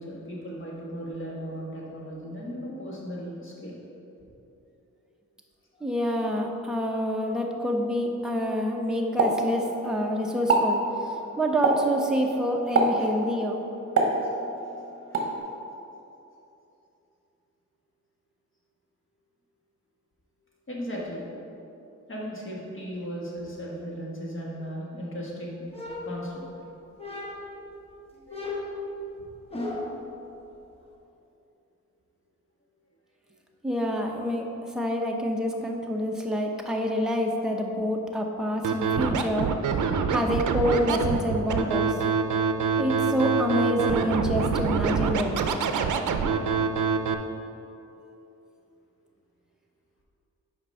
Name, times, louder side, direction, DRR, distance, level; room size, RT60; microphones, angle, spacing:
voice 1, 0.0-3.7 5.7-5.9 13.0-13.1 15.1-15.3 20.7-21.3 22.1-25.6 26.0-26.4 28.2-28.4, equal, 40° left, -4 dB, 1.7 m, -36 dB
voice 2, 5.8-13.6 33.6-42.0 42.8-45.5, equal, ahead, 0 dB, 0.7 m, -27 dB
Explosion, 9.2-10.0 10.4-10.8 11.6-12.0 12.7-13.1 14.0-14.7 15.1-15.4, right 3 dB, 45° right, 1.0 m, -24 dB
sound 1, 25.7-26.6 27.0-27.6 28.3-30.1, left 2 dB, 20° left, 1.0 m, -35 dB
Scratching (performance technique), 38.6-47.1, right 6 dB, 75° right, 0.5 m, -25 dB
5.9 x 5.2 x 5.5 m, 2.9 s
wide cardioid pair, 120°, 31 cm